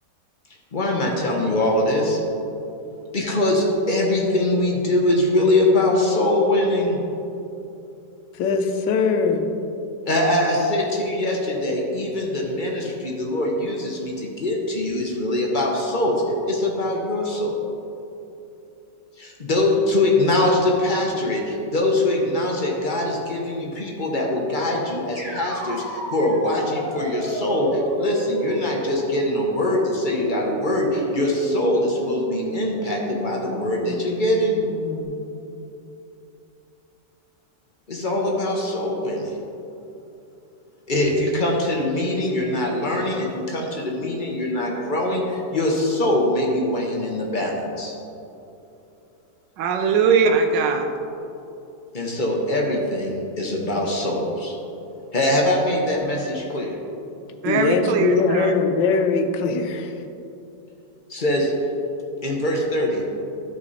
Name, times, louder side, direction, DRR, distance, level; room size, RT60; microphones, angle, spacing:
voice 1, 0.7-2.2 3.1-7.0 10.0-17.6 19.2-34.6 37.9-39.3 40.9-47.9 51.9-54.5 55.1-56.7 61.1-61.5 62.2-63.0, left 1 dB, 35° left, -1 dB, 0.9 m, -23 dB
voice 2, 8.3-9.4 57.4-59.9, left 4 dB, 85° left, 6 dB, 1.4 m, -21 dB
sound 1, 25.1-35.0, equal, 30° right, 2.2 m, -32 dB
voice 3, 49.6-50.9 57.4-58.5, right 5 dB, 85° right, 5 dB, 1.4 m, -20 dB
12.0 x 5.3 x 4.1 m, 2.8 s
omnidirectional pair, 1.9 m